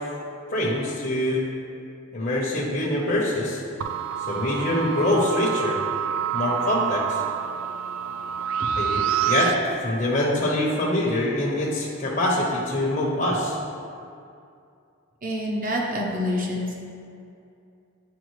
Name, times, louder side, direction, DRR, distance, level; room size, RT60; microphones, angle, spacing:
voice 1, 0.5-1.4 2.1-3.6 4.3-5.8 6.3-7.2 8.8-9.5 9.8-13.6, left 1 dB, 40° left, -4 dB, 0.8 m, -24 dB
sound 1, 3.8-9.5, right 9 dB, 90° right, 0.3 m, -27 dB
voice 2, 15.2-16.7, left 1 dB, 40° right, -2 dB, 1.0 m, -27 dB
9.2 x 4.8 x 3.2 m, 2.5 s
head